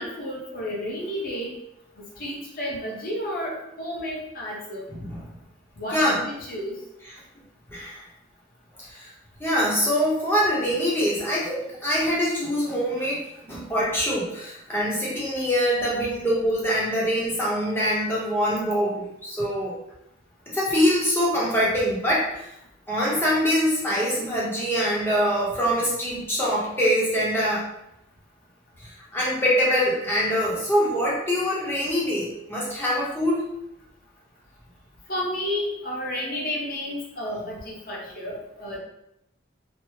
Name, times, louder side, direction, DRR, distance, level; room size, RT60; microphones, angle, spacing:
voice 1, 0.0-1.5 2.0-4.9 5.8-6.7 35.1-38.8, left 1 dB, 45° left, -3 dB, 0.8 m, -31 dB
voice 2, 4.9-5.2 5.9-6.2 7.7-8.0 8.8-9.1 9.4-19.8 20.5-22.5 22.9-27.7 28.8-33.5, equal, 10° left, -6 dB, 0.7 m, -24 dB
3.4 x 2.1 x 3.1 m, 0.81 s
head